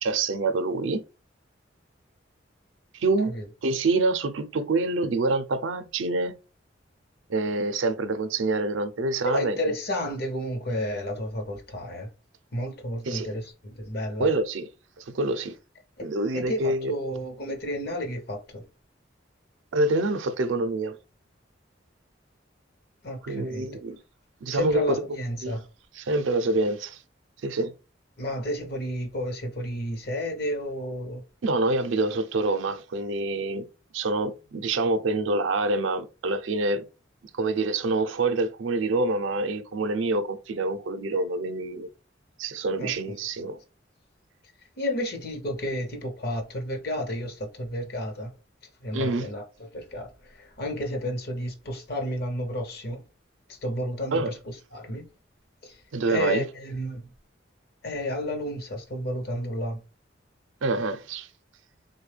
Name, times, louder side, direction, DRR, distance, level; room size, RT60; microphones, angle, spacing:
voice 1, 0.0-1.1 2.9-3.3 3.6-6.4 7.3-9.6 13.1-13.3 14.2-14.7 15.0-15.6 16.0-16.9 19.7-21.0 23.2-24.0 24.4-25.0 25.4-25.6 26.0-27.0 27.4-27.7 31.4-33.7 33.9-36.8 37.3-41.9 42.4-43.6 48.9-49.3 54.1-54.3 55.9-56.4 60.6-61.3, right 2 dB, 85° right, 0.5 m, -26 dB
voice 2, 9.2-12.1 12.5-14.3 16.0-16.1 16.3-18.6 23.0-23.8 24.5-25.6 28.2-31.2 42.8-43.1 44.8-48.3 48.8-49.4 49.7-53.0 53.5-55.1 55.6-55.8 56.1-57.1 57.8-59.8, equal, 55° left, 0.8 m, -31 dB
3.5 x 2.2 x 3.2 m
head